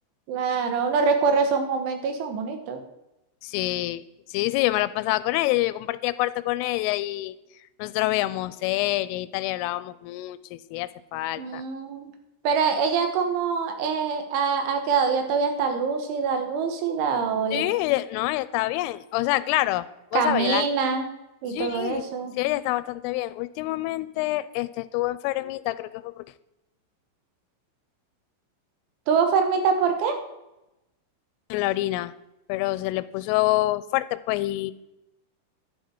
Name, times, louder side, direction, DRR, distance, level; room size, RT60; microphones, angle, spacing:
voice 1, 0.3-2.8 11.4-12.1 12.5-17.6 20.1-21.1 21.4-22.3 29.1-30.2, right 5 dB, 75° right, 6 dB, 3.7 m, -24 dB
voice 2, 3.4-4.0 4.3-7.3 7.8-11.6 17.5-19.9 20.1-20.7 21.5-22.0 22.4-26.3 31.5-32.1 32.5-34.7, left 17 dB, 85° left, 16 dB, 3.1 m, -26 dB
11.5 x 10.5 x 4.5 m, 0.92 s
omnidirectional pair, 5.7 m